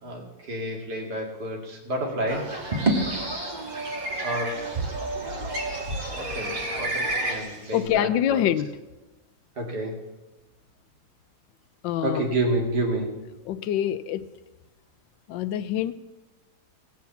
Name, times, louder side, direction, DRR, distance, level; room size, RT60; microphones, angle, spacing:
voice 1, 0.0-2.6 4.2-4.8 6.1-8.4 9.6-10.0 12.0-13.1, right 1 dB, 60° right, 1 dB, 2.8 m, -29 dB
sound 1, 2.3-7.4, right 2 dB, 25° right, 1.5 m, -31 dB
Bird, 2.3-7.9, right 1 dB, 85° right, 2.7 m, -34 dB
voice 2, 7.7-8.7 11.8-12.3 13.5-14.3 15.3-15.9, left 11 dB, 85° left, 11 dB, 1.3 m, -25 dB
17.5 x 7.5 x 7.1 m, 1.1 s
omnidirectional pair, 2.0 m